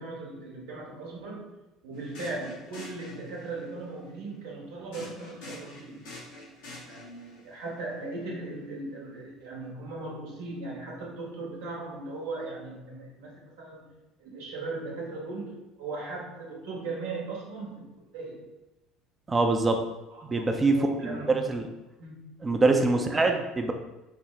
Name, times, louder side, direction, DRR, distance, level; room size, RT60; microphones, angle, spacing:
voice 1, 0.0-1.5 1.8-6.0 6.8-13.9 14.2-18.5 20.1-21.4 22.0-22.3 22.9-23.4, right 2 dB, 75° right, -2 dB, 1.0 m, -38 dB
sound 1, 1.9-3.7 4.9-7.4, left 2 dB, 75° left, 1.1 m, -45 dB
voice 2, 19.3-19.8 20.3-20.7 21.0-21.2 21.5-21.6 22.4-23.7, right 3 dB, 25° right, 4 dB, 0.5 m, -24 dB
4.1 x 2.1 x 3.8 m, 1.0 s
hypercardioid pair, 65°, 0 cm